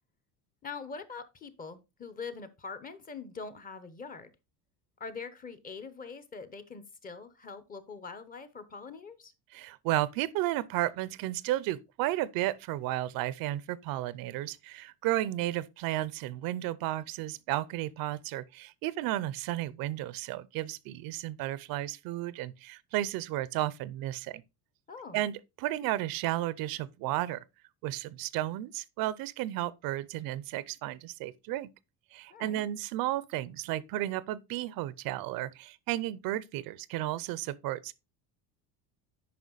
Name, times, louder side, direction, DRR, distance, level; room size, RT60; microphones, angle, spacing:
voice 1, 0.6-4.3 5.0-9.3 24.9-25.2 32.3-32.6, left 5 dB, 20° left, 0.8 m, -43 dB
voice 2, 9.5-24.4 25.1-27.4 27.8-31.7 32.1-37.9, right 15 dB, 60° right, 0.6 m, -33 dB
9.4 x 5.5 x 3.9 m
cardioid pair, 165°, 40 cm